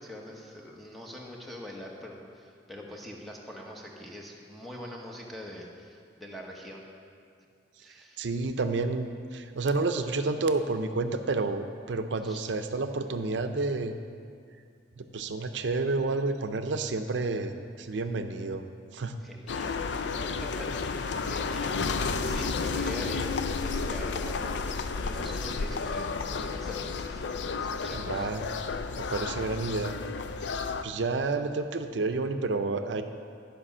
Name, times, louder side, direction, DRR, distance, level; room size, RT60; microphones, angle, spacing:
voice 1, 0.0-6.9 7.8-8.3 12.2-12.4 19.2-19.8 20.2-21.8 22.2-24.6 24.9-27.2 27.6-28.3, left 1 dB, ahead, -2 dB, 1.1 m, -43 dB
voice 2, 8.2-13.9 15.0-18.6 18.9-19.2 27.9-28.4 29.1-30.0 30.5-33.0, right 3 dB, 75° right, 8 dB, 0.6 m, -30 dB
sound 1, 19.5-30.8, left 4 dB, 70° left, 0.4 m, -32 dB
11.5 x 5.2 x 6.1 m, 2.3 s
head